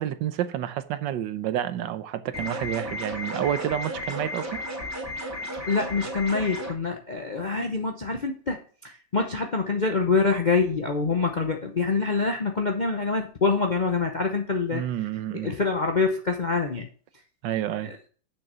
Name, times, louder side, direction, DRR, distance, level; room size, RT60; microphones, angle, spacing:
voice 1, 0.0-4.6 14.7-15.5 17.4-17.9, right 11 dB, 75° right, 1.4 m, -29 dB
sound 1, 2.3-6.7, left 1 dB, 10° right, 2.3 m, -33 dB
voice 2, 5.7-14.8 15.4-16.9, left 4 dB, 50° left, 0.5 m, -25 dB
6.8 x 6.1 x 6.7 m
omnidirectional pair, 2.0 m